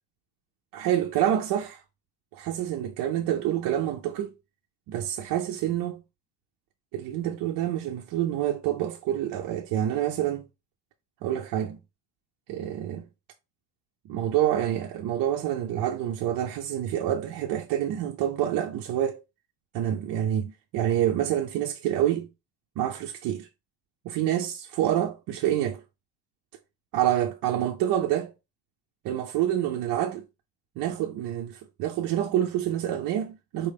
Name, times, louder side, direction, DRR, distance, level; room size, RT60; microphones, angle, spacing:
voice 1, 0.7-1.8 2.4-4.3 4.9-6.0 6.9-10.4 11.2-11.8 12.5-13.0 14.1-19.2 19.7-22.3 22.8-23.5 24.0-25.8 26.9-28.3 29.0-30.2 30.8-33.7, right 11 dB, 50° right, 0.5 m, -27 dB
4.4 x 3.2 x 3.3 m
cardioid pair, 180°, 45 cm